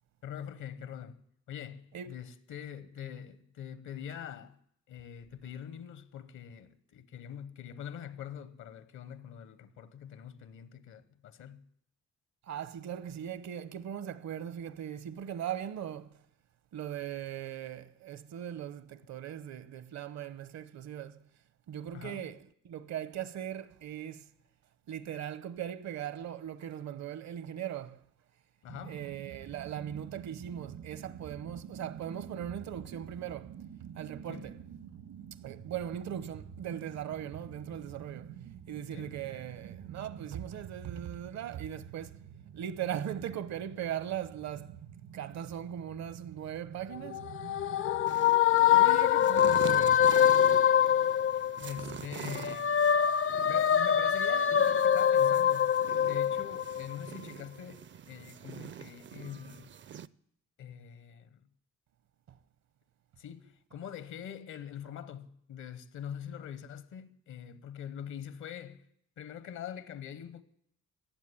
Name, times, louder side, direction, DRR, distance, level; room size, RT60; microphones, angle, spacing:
voice 1, 0.2-1.2 1.5-4.6 4.9-11.6 21.9-22.3 28.6-29.0 34.3-34.5 38.9-39.2 51.6-52.8 53.5-55.7 56.0-59.7 60.6-61.4 63.2-68.9 69.2-70.4, left 9 dB, 75° left, 1.1 m, -44 dB
voice 2, 12.5-16.2 16.7-21.2 21.7-22.4 22.6-24.3 24.9-28.0 28.9-33.5 33.8-34.6 35.4-38.3 38.7-42.2 42.5-44.8 45.1-47.2 48.6-50.3, right 10 dB, 65° right, 0.9 m, -39 dB
sound 1, 28.7-48.1, right 9 dB, 80° right, 1.7 m, -48 dB
sound 2, 46.9-51.9 52.3-57.0, left 9 dB, 45° left, 0.5 m, -25 dB
sound 3, 48.1-60.1, right 9 dB, 40° right, 0.5 m, -45 dB
16.0 x 7.5 x 9.9 m
cardioid pair, 90°, 30 cm